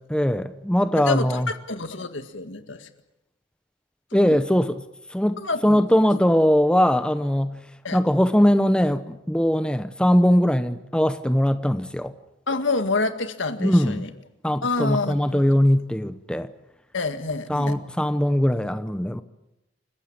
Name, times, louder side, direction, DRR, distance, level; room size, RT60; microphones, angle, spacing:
voice 1, 0.1-1.5 4.1-4.8 5.1-7.6 7.9-12.1 13.6-14.1 14.4-16.5 17.5-19.2, equal, 5° left, 0.8 m, -21 dB
voice 2, 1.1-2.9 4.2-4.4 5.4-5.8 7.8-8.0 12.5-14.1 14.6-15.4 16.9-17.7, left 3 dB, 75° left, 1.9 m, -27 dB
29.0 x 15.5 x 8.7 m
head